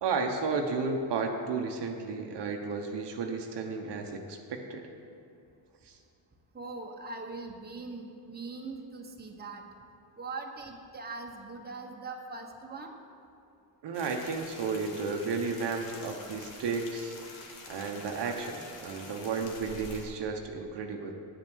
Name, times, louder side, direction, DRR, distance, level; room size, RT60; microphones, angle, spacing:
voice 1, 0.0-4.9 5.8-6.0 13.8-17.2 17.7-21.1, right 4 dB, 60° right, 3 dB, 1.1 m, -33 dB
voice 2, 6.5-9.6 10.2-13.0, right 3 dB, 20° right, 1 dB, 1.2 m, -41 dB
sound 1, 13.9-20.0, left 3 dB, 70° left, 1.8 m, -47 dB
8.8 x 7.6 x 6.3 m, 2.6 s
cardioid pair, 90°, 46 cm